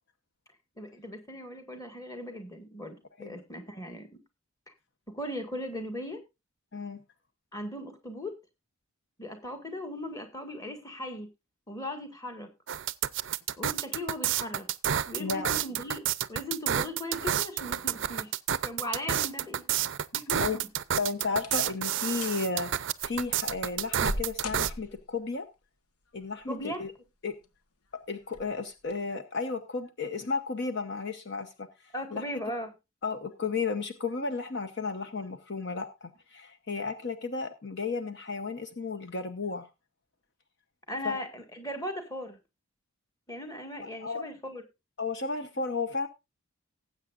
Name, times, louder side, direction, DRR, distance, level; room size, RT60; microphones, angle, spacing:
voice 1, 0.8-4.1 5.1-6.2 7.5-8.3 9.2-11.3 11.7-12.5 13.6-14.7 15.1-18.3 18.6-19.6 20.1-20.5 26.5-26.8 31.9-32.7 40.9-42.4 43.3-44.6, left 1 dB, 15° left, 6 dB, 1.8 m, -38 dB
sound 1, 12.7-24.7, right 10 dB, 55° right, 0.5 m, -29 dB
voice 2, 15.2-15.5 20.4-20.6 21.0-25.5 26.1-26.9 27.2-27.3 27.9-31.7 32.1-32.2 33.0-39.7 41.0-41.2 43.8-44.2 45.0-46.1, left 4 dB, 50° left, 8 dB, 0.9 m, -33 dB
sound 2, 20.6-20.9 21.3-21.8 22.1-22.4 23.0-25.2 26.4-27.0 27.4-27.5 28.3-28.5 28.9-29.0, left 1 dB, 85° left, 1.2 m, -39 dB
19.0 x 8.2 x 2.5 m, 0.24 s
head